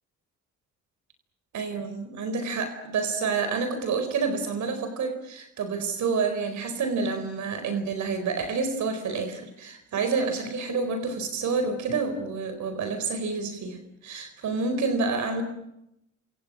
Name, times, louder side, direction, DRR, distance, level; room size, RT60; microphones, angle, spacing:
voice 1, 1.5-15.4, right 4 dB, 70° right, 8 dB, 4.4 m, -28 dB
30.0 x 27.0 x 6.2 m, 0.84 s
cardioid pair, 90°, 30 cm